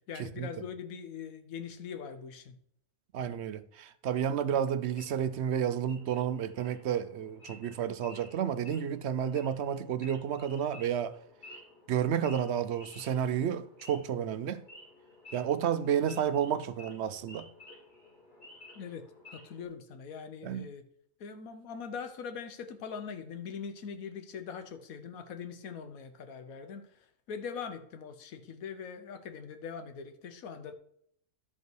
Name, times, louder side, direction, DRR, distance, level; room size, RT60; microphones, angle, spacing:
voice 1, 0.1-2.6 18.8-20.8 21.2-26.9 27.3-30.7, left 6 dB, 90° left, 1.3 m, -42 dB
voice 2, 3.1-11.2 11.9-14.6 15.3-17.5 20.4-20.7, right 9 dB, 65° right, 0.7 m, -31 dB
Wild animals / Idling, 4.9-19.7, left 1 dB, 55° left, 3.3 m, -54 dB
12.0 x 5.4 x 4.6 m
omnidirectional pair, 1.4 m